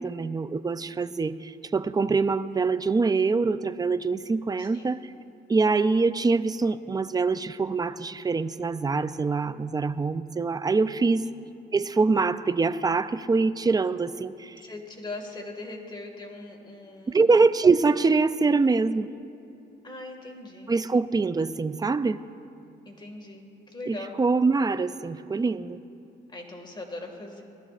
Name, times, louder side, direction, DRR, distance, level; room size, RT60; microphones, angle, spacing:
voice 1, 0.0-5.0 5.5-11.2 11.7-14.6 17.1-19.1 20.7-22.2 23.9-25.8, right 4 dB, 20° right, 14 dB, 0.4 m, -24 dB
voice 2, 4.6-4.9 11.2-11.3 14.6-17.3 19.8-20.7 22.9-24.2 26.3-27.4, left 2 dB, 20° left, 2 dB, 1.9 m, -40 dB
19.5 x 12.5 x 2.5 m, 2.7 s
cardioid pair, 90°, 20 cm